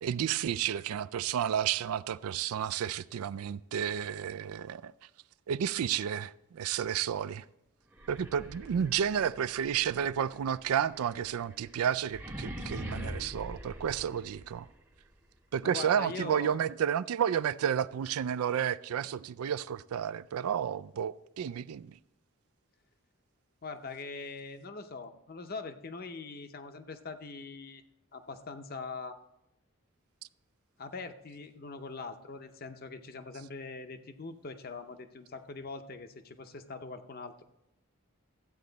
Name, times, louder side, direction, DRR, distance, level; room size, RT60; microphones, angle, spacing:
voice 1, 0.0-4.9 5.5-7.4 8.1-14.7 15.5-22.0, right 8 dB, 80° right, 0.3 m, -31 dB
sound 1, 7.9-14.8, equal, 10° right, 0.8 m, -44 dB
voice 2, 15.6-16.6 23.6-27.8 28.1-29.2 30.8-37.5, left 4 dB, 45° left, 0.7 m, -42 dB
13.0 x 8.5 x 3.9 m
head